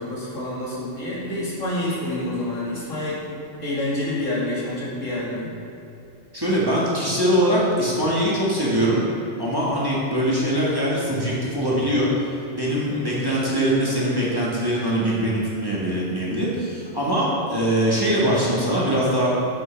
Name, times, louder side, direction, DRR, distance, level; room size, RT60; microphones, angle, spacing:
voice 1, 0.0-3.2 3.6-5.5 12.9-13.3, left 1 dB, 85° left, -7 dB, 2.6 m, -28 dB
voice 2, 6.3-9.0 9.4-12.1 12.5-19.3, equal, 20° right, -7 dB, 1.8 m, -22 dB
9.2 x 8.4 x 3.5 m, 2.8 s
omnidirectional pair, 1.3 m